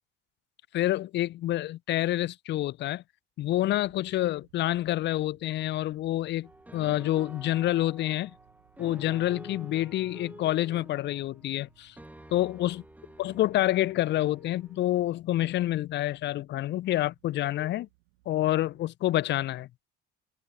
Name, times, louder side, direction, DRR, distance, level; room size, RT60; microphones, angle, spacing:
voice 1, 0.7-3.0 3.4-8.3 8.8-11.9 12.3-12.8 13.2-17.9 18.3-19.7, left 14 dB, 30° left, 0.4 m, -28 dB
sound 1, 3.7-18.9, right 28 dB, 70° right, 7.7 m, -66 dB
sound 2, 6.4-15.0, right 1 dB, 5° right, 1.0 m, -50 dB
figure-of-eight pair, 55°, 36 cm